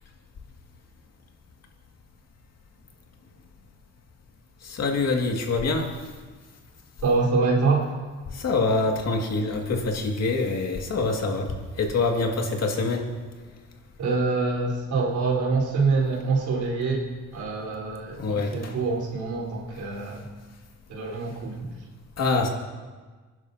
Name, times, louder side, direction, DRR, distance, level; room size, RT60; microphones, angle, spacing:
voice 1, 4.6-5.9 8.3-13.2 18.2-18.7 22.2-22.5, left 3 dB, 55° left, 2 dB, 2.1 m, -25 dB
voice 2, 7.0-7.9 14.0-17.0 17.3-20.2 20.9-21.7, right 4 dB, 80° right, -3 dB, 3.9 m, -25 dB
24.0 x 10.5 x 2.8 m, 1.4 s
cardioid pair, 90°, 30 cm